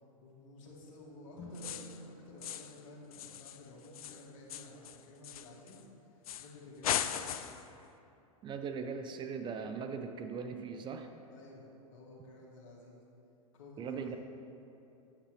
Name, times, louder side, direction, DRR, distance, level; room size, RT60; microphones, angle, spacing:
voice 1, 0.2-7.4 11.3-13.0 13.5-14.2, left 1 dB, 60° left, -3 dB, 1.9 m, -53 dB
sound 1, 1.3-3.7, right 1 dB, 25° left, 1.8 m, -51 dB
Railings bashing, 1.5-2.0 2.4-2.8 3.1-5.8 6.2-6.5 6.8-7.7, left 10 dB, 85° left, 0.4 m, -38 dB
voice 2, 8.4-11.1 13.8-14.2, right 6 dB, 25° right, 7 dB, 0.5 m, -39 dB
8.8 x 7.3 x 3.3 m, 2.8 s
hypercardioid pair, 110°, 18 cm